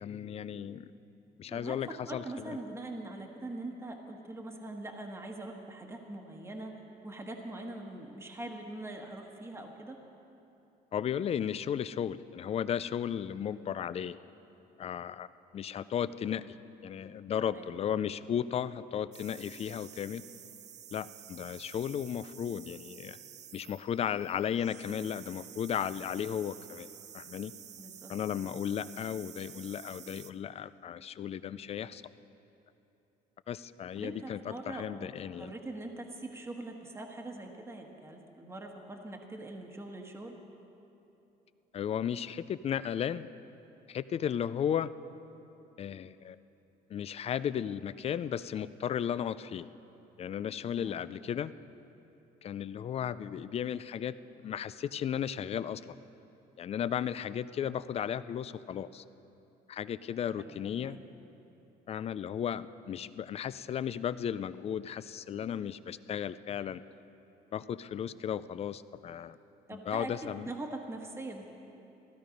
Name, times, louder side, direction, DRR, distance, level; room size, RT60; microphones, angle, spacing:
voice 1, 0.0-0.9 1.4-2.6 10.9-14.2 14.8-15.3 15.5-16.6 16.8-20.2 20.9-23.2 23.5-26.9 27.1-27.5 28.1-32.0 33.5-35.5 41.7-43.3 43.9-44.9 45.8-46.4 46.9-49.7 50.2-51.5 52.4-54.1 54.4-56.0 56.6-59.0 59.7-61.0 61.9-66.8 67.5-69.4 69.7-70.5, left 9 dB, 35° left, 16 dB, 0.4 m, -35 dB
voice 2, 1.5-10.0 13.5-13.6 17.5-17.9 27.7-28.1 34.0-35.1 35.4-40.4 50.8-51.0 60.4-60.5 60.8-61.0 69.7-71.5, right 2 dB, 15° right, 2 dB, 1.3 m, -43 dB
sound 1, 19.1-30.3, right 9 dB, 45° right, 0.5 m, -51 dB
15.5 x 12.5 x 5.2 m, 2.9 s
cardioid pair, 110°, 17 cm